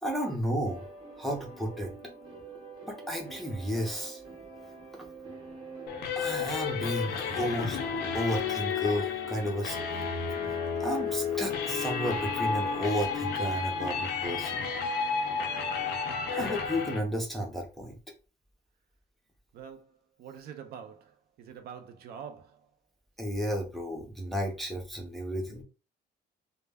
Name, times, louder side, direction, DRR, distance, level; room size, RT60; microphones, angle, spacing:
voice 1, 0.0-0.8 1.2-1.9 2.9-4.2 6.2-7.8 8.1-9.8 10.8-14.6 16.3-18.0 23.2-25.6, equal, ahead, 0.5 m, -32 dB
sound 1, 0.6-16.7, right 4 dB, 25° right, 0.8 m, -47 dB
sound 2, 5.9-17.0, left 6 dB, 65° left, 0.5 m, -32 dB
voice 2, 19.5-22.7, right 7 dB, 60° right, 0.4 m, -46 dB
2.1 x 2.1 x 3.3 m
cardioid pair, 175°, 18 cm